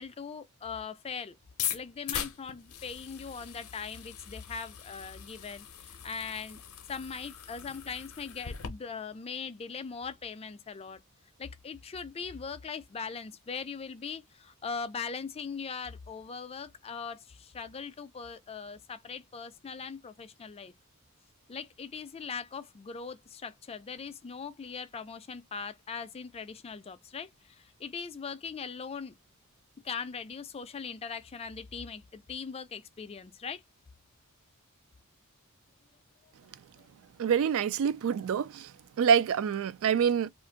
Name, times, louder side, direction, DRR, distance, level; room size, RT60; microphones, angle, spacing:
voice 1, 0.0-1.4 1.7-6.6 6.9-11.0 11.4-20.7 21.5-29.1 29.8-33.6 36.8-36.9, left 5 dB, 25° left, 0.4 m, -40 dB
sound 1, 1.5-8.7, left 9 dB, 70° left, 0.6 m, -40 dB
voice 2, 37.2-38.7 39.0-40.3, right 7 dB, 65° right, 0.3 m, -26 dB
2.5 x 2.5 x 3.7 m
head